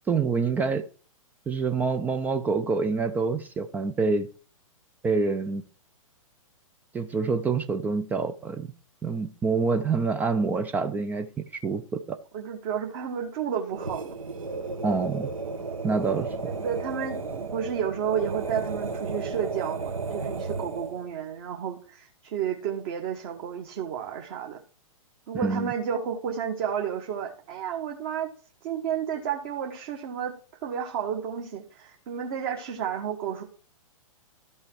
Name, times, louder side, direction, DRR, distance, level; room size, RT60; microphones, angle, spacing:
voice 1, 0.1-0.8 1.5-4.3 5.0-5.6 6.9-8.7 9.0-12.2 14.8-15.3 15.8-16.5 25.3-25.7, right 4 dB, 10° right, 9 dB, 0.4 m, -26 dB
voice 2, 12.3-14.1 16.5-24.6 25.3-28.3 28.6-30.3 30.6-33.4, right 8 dB, 40° right, 1 dB, 1.4 m, -31 dB
sound 1, 13.7-21.1, right 4 dB, 70° right, 1.5 m, -34 dB
12.5 x 5.5 x 4.5 m, 0.39 s
figure-of-eight pair, 115°, 18 cm